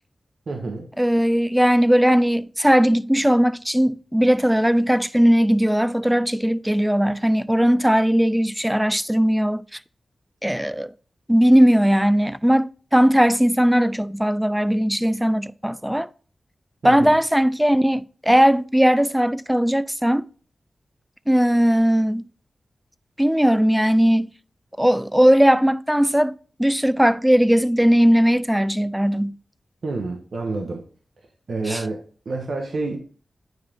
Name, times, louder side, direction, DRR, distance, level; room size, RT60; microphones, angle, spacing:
voice 1, 0.5-0.9 16.8-17.2 29.8-30.8 31.5-33.0, right 3 dB, 65° right, 1.3 m, -28 dB
voice 2, 1.0-9.6 10.4-10.9 11.3-16.1 16.8-20.3 21.3-22.2 23.2-24.3 24.8-26.3 26.6-29.4 31.7-31.8, equal, 5° right, 0.3 m, -18 dB
9.5 x 4.8 x 3.6 m
wide cardioid pair, 110°, 0 cm